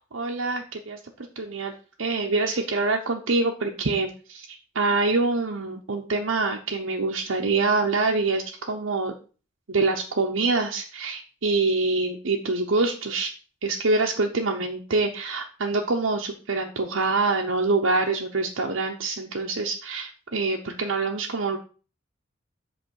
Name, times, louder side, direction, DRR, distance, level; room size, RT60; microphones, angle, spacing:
voice 1, 0.1-1.0 1.4-1.7 2.0-9.1 9.7-13.3 13.6-21.6, right 3 dB, 85° right, 1 dB, 0.9 m, -25 dB
7.8 x 3.3 x 6.4 m, 0.37 s
head